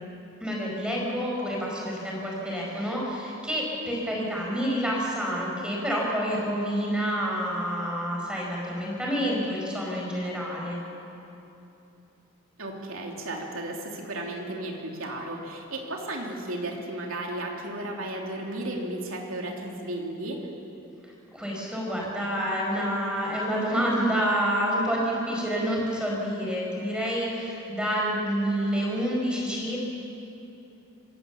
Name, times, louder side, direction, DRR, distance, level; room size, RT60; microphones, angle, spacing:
voice 1, 0.4-10.8 21.3-29.8, equal, 5° right, -3 dB, 4.9 m, -28 dB
voice 2, 12.6-20.4, right 1 dB, 70° right, 0 dB, 3.1 m, -34 dB
26.0 x 17.0 x 7.2 m, 3.0 s
head